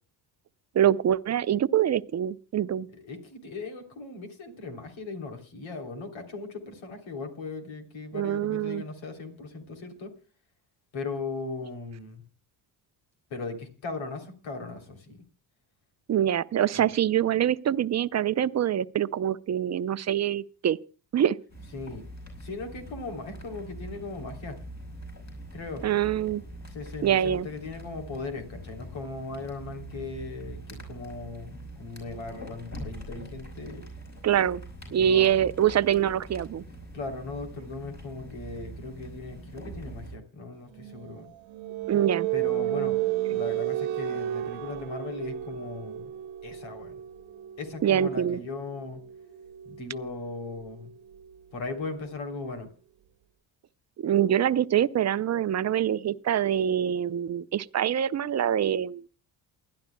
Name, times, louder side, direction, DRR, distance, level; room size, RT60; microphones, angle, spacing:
voice 1, 0.7-2.9 8.1-8.8 16.1-20.8 21.1-21.4 25.8-26.4 27.0-27.5 34.2-34.6 34.9-36.6 41.9-42.3 47.8-48.4 54.0-59.0, right 10 dB, 35° right, 0.6 m, -25 dB
voice 2, 2.9-10.1 10.9-12.2 13.3-15.2 16.7-16.9 21.7-22.1 22.4-24.6 25.5-25.9 26.7-33.9 34.9-35.5 36.9-41.3 42.3-43.0 43.3-46.1 46.4-47.0 47.6-49.0 49.6-50.9 51.5-52.7, left 3 dB, 65° left, 3.5 m, -38 dB
sound 1, 21.5-40.2, right 1 dB, 30° left, 5.8 m, -43 dB
sound 2, 40.7-52.2, right 13 dB, 65° right, 1.1 m, -34 dB
28.5 x 11.5 x 2.3 m
hypercardioid pair, 60°, 50 cm